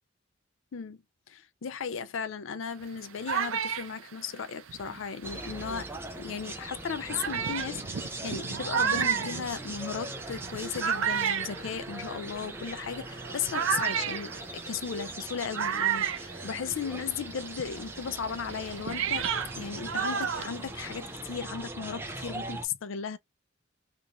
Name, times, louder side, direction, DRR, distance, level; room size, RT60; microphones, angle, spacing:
voice 1, 1.3-5.9 6.2-19.3 19.6-23.2, left 6 dB, 75° left, 0.4 m, -36 dB
sound 1, 2.8-5.8 6.5-6.6 7.1-17.1 17.4-21.2, right 7 dB, 75° right, 0.5 m, -32 dB
sound 2, 5.2-22.7, right 2 dB, 10° right, 0.4 m, -40 dB
2.5 x 2.4 x 2.8 m
head